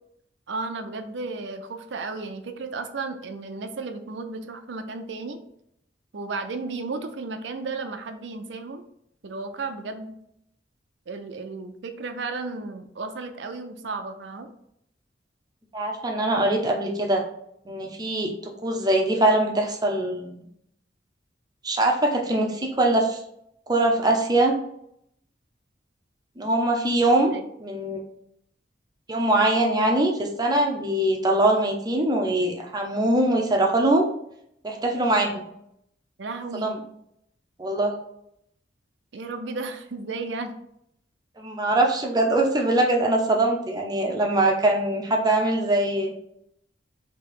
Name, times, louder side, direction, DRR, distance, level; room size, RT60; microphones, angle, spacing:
voice 1, 0.5-5.4 6.1-8.8 9.2-10.1 11.1-14.5 27.3-27.4 36.2-36.8 39.1-40.5, right 3 dB, 70° right, 7 dB, 0.5 m, -34 dB
voice 2, 15.7-17.2 17.7-20.4 21.6-23.2 23.7-24.6 26.4-27.3 27.6-28.0 29.1-34.1 34.6-35.4 36.5-36.8 37.6-37.9 41.4-46.1, right 1 dB, 20° right, 2 dB, 0.6 m, -22 dB
3.2 x 2.9 x 4.6 m, 0.75 s
head